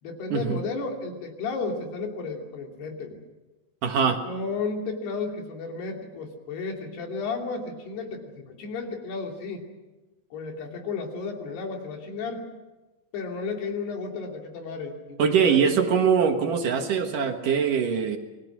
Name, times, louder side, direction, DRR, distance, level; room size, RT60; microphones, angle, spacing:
voice 1, 0.0-3.2 4.0-9.6 10.3-12.5 13.1-15.7, left 4 dB, 75° left, 2 dB, 4.9 m, -33 dB
voice 2, 3.8-4.2 15.2-18.2, right 6 dB, 60° right, 4 dB, 2.8 m, -22 dB
28.0 x 22.0 x 6.2 m, 1.1 s
omnidirectional pair, 4.7 m